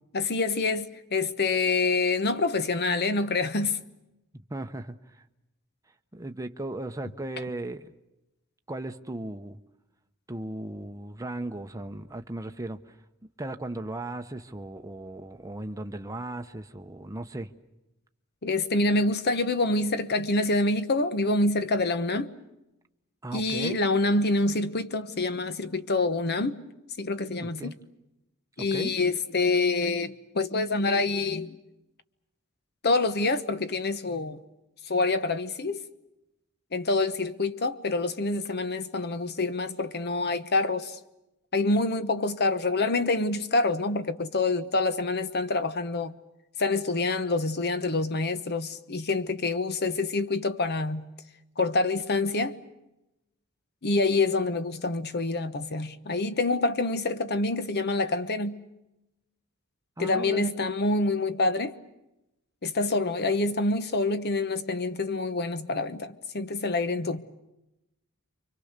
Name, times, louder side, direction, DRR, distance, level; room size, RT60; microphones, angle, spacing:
voice 1, 0.1-3.8 18.4-22.3 23.3-26.6 27.0-27.7 28.6-31.6 32.8-34.4 34.8-35.8 36.7-41.0 41.5-46.1 46.6-51.1 51.6-52.6 53.8-58.6 60.0-61.8 62.6-67.2, left 3 dB, 50° left, 1.1 m, -26 dB
voice 2, 4.3-5.2 6.1-7.9 8.7-9.6 10.3-13.0 13.4-17.5 23.2-23.8 27.6-27.7 28.6-28.9 60.0-60.5, right 1 dB, 15° right, 0.9 m, -36 dB
29.0 x 24.5 x 6.7 m
head